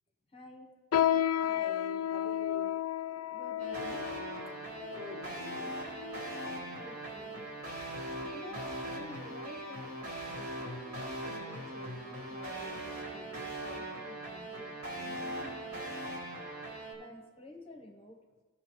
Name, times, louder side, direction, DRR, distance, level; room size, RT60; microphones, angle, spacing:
voice 1, 0.3-0.8 3.3-4.1 6.8-7.5 8.3-16.0 16.9-18.2, left 1 dB, 25° left, 3 dB, 0.9 m, -51 dB
sound 1, 0.9-6.6 7.3-7.4 8.1-8.4 8.8-9.0 9.7-9.8, left 10 dB, 85° left, 0.4 m, -33 dB
voice 2, 1.4-2.7 4.8-5.7, left 1 dB, 15° right, 1 dB, 0.6 m, -48 dB
sound 2, 3.6-16.9, right 1 dB, 90° right, 2.3 m, -40 dB
14.0 x 5.9 x 3.0 m, 1.5 s
head